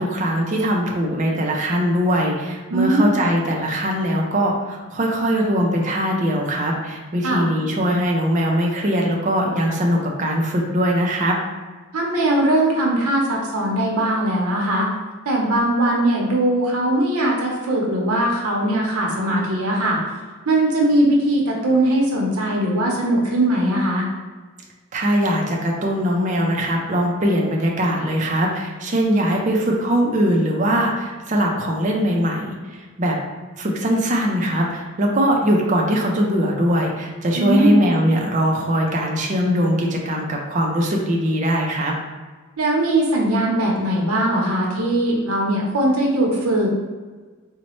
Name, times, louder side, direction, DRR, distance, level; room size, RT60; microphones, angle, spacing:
voice 1, 0.0-11.4 24.9-33.2 33.6-42.0, equal, 35° right, -1 dB, 0.4 m, -21 dB
voice 2, 2.7-3.2 7.2-7.4 11.9-14.9 15.3-20.0 20.5-24.1 37.4-37.8 42.6-46.7, right 1 dB, 90° right, -2 dB, 0.7 m, -20 dB
4.0 x 2.1 x 3.0 m, 1.4 s
head